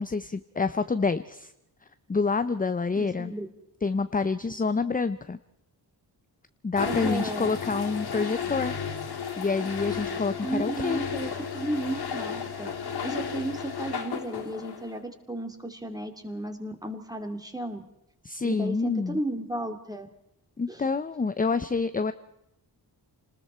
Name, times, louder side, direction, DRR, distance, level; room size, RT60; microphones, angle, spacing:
voice 1, 0.0-1.5 2.1-3.3 3.8-5.4 6.6-8.7 9.4-11.0 18.2-19.2 20.6-22.1, left 4 dB, 20° left, 11 dB, 0.6 m, -27 dB
voice 2, 2.9-3.5 6.8-7.5 10.4-12.7 13.0-17.8 18.4-20.1 20.7-20.8, right 1 dB, 10° right, 6 dB, 2.7 m, -34 dB
sound 1, 6.8-15.0, left 6 dB, 70° left, 3.3 m, -33 dB
29.5 x 20.0 x 4.4 m, 0.80 s
wide cardioid pair, 140°, 40 cm